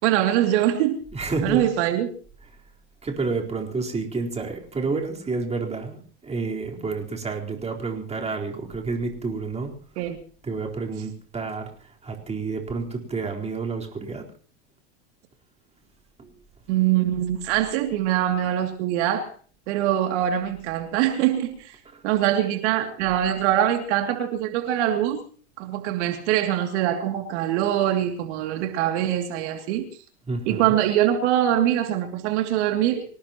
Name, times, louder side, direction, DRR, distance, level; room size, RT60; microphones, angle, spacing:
voice 1, 0.0-1.0 1.4-2.1 10.0-10.2 16.7-19.3 19.7-21.7 22.0-25.2 25.6-29.9 30.5-33.0, right 12 dB, 65° right, 4 dB, 2.8 m, -23 dB
voice 2, 1.1-1.6 3.0-9.7 10.0-10.1 10.4-14.3 16.2-16.3 21.8-22.0 23.0-23.1 30.3-30.8, right 4 dB, 15° right, 0 dB, 4.2 m, -30 dB
25.5 x 18.5 x 3.0 m, 0.44 s
supercardioid pair, 115°, 37 cm